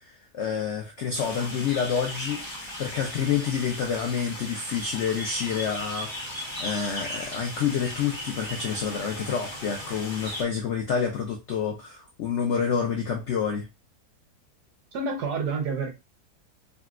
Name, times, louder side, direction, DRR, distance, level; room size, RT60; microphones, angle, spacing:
voice 1, 0.0-13.7, left 7 dB, 80° left, 0.6 m, -28 dB
sound 1, 1.1-10.4, left 1 dB, 25° left, 0.7 m, -37 dB
voice 2, 14.9-15.9, right 4 dB, 75° right, 1.4 m, -28 dB
3.7 x 2.2 x 2.4 m
omnidirectional pair, 1.8 m